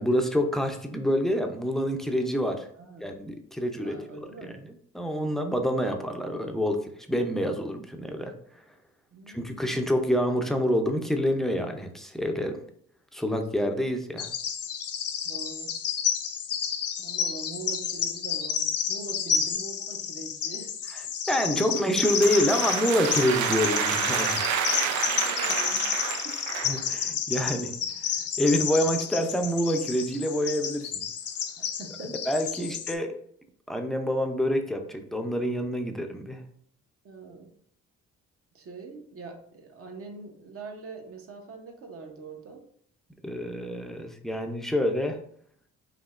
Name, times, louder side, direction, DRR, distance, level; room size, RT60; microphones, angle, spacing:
voice 1, 0.0-2.7 3.0-4.0 4.4-4.5 4.9-8.3 9.3-12.6 13.1-14.3 21.3-24.4 26.6-27.7 28.4-31.0 32.3-33.1 33.7-36.4 43.2-45.2, equal, ahead, 4 dB, 0.5 m, -27 dB
voice 2, 2.7-3.0 3.8-4.6 9.1-9.8 15.2-15.7 17.0-20.7 21.4-21.9 22.4-22.5 25.1-26.4 27.3-27.9 31.6-32.2 32.6-32.8 37.0-37.5 38.5-42.6, right 4 dB, 50° right, 3 dB, 0.9 m, -43 dB
Bird vocalization bird call bird song, 14.2-32.9, left 7 dB, 55° left, 0.5 m, -31 dB
sound 1, 21.8-26.9, right 7 dB, 75° right, 0.5 m, -29 dB
5.0 x 2.8 x 2.5 m, 0.65 s
cardioid pair, 90°, 30 cm